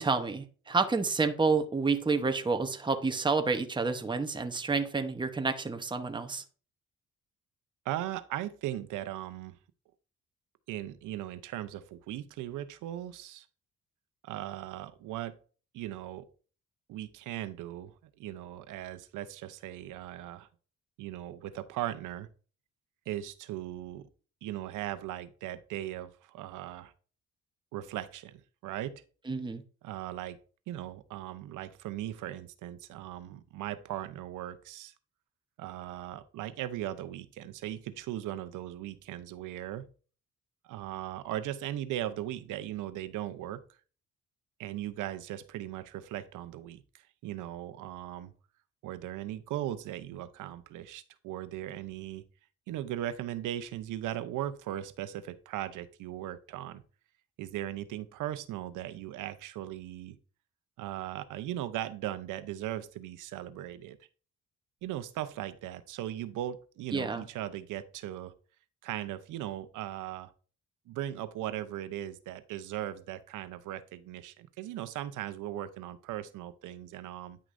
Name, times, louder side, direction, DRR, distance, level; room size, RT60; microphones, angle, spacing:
voice 1, 0.0-6.4 29.3-29.6 66.9-67.2, right 4 dB, 15° right, 7 dB, 0.9 m, -29 dB
voice 2, 7.8-9.6 10.7-13.5 14.2-15.4 15.7-16.3 16.9-20.5 21.0-22.3 23.1-24.1 24.4-26.9 27.7-29.0 29.8-30.4 30.7-34.9 35.6-39.9 40.6-43.6 44.6-48.3 48.8-52.2 52.7-56.8 57.4-60.2 60.8-64.0 64.8-68.3 68.8-70.3 70.9-77.4, right 13 dB, 90° right, 13 dB, 0.7 m, -38 dB
9.7 x 6.0 x 2.6 m, 0.38 s
cardioid pair, 90°, 30 cm